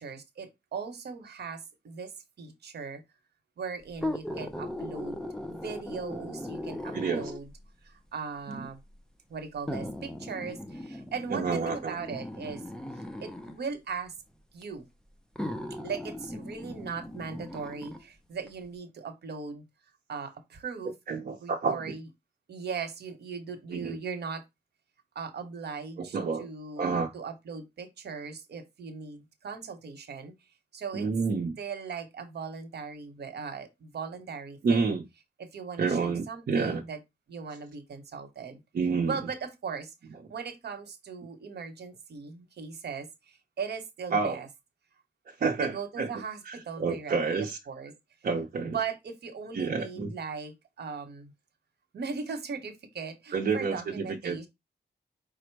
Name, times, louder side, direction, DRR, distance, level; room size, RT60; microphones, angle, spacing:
voice 1, 0.0-2.1 2.4-3.0 3.6-5.2 5.5-7.5 7.8-8.8 9.3-12.6 13.2-14.1 14.5-14.9 15.8-19.6 20.1-20.9 21.4-22.1 22.5-24.4 25.1-30.3 30.7-31.1 31.6-35.0 35.4-37.0 37.3-38.6 39.1-39.9 40.3-44.5 45.6-47.9 48.7-51.3 51.9-54.5, right 5 dB, 70° right, 1.0 m, -38 dB
sound 1, 3.9-7.6 8.5-8.6 9.7-13.6 14.6-14.7 15.4-18.0 18.5-18.6, left 1 dB, 5° left, 0.5 m, -38 dB
voice 2, 6.9-7.3 8.5-8.6 11.3-12.2 21.1-21.8 23.7-24.0 26.0-26.5 26.8-27.1 30.9-31.6 34.6-35.0 35.8-36.8 38.7-39.1 44.1-44.4 45.3-46.1 46.5-47.6 48.2-48.8 49.5-50.1 53.3-54.4, right 5 dB, 55° right, 0.7 m, -29 dB
5.0 x 2.1 x 4.5 m
wide cardioid pair, 165°, 18 cm